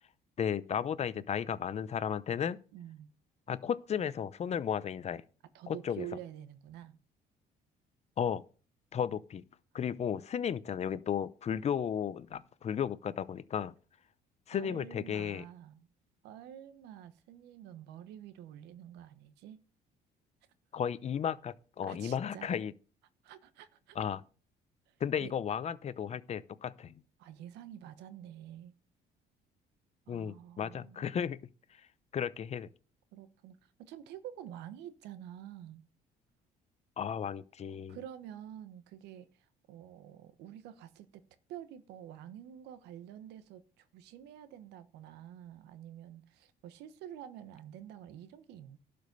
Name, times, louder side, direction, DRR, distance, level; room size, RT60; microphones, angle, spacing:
voice 1, 0.4-2.6 3.5-5.2 5.7-6.0 8.2-8.4 8.9-9.4 9.7-13.7 14.5-15.4 20.7-22.7 24.0-24.2 25.0-27.0 30.1-31.4 32.1-32.7 37.0-38.0, left 8 dB, 40° left, 0.7 m, -34 dB
voice 2, 2.7-3.1 5.5-7.0 14.5-15.9 16.2-19.6 21.8-22.5 23.2-24.0 24.9-25.4 27.2-28.8 30.1-31.2 33.1-35.8 37.9-41.2 41.5-48.8, right 11 dB, 90° right, 1.1 m, -48 dB
12.0 x 5.2 x 6.7 m
cardioid pair, 110°, 17 cm